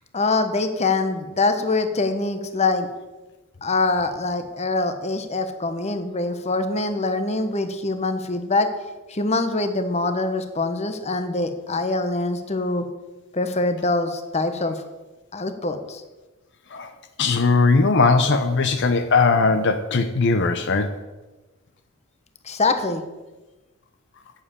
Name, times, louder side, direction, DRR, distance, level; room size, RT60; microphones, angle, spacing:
voice 1, 0.1-2.9 3.6-8.7 9.1-12.9 13.3-14.8 15.3-16.0 22.4-23.0, left 3 dB, 30° left, 8 dB, 1.0 m, -24 dB
voice 2, 17.2-20.9, left 4 dB, 60° left, 7 dB, 0.7 m, -19 dB
8.3 x 7.4 x 8.3 m, 1.1 s
head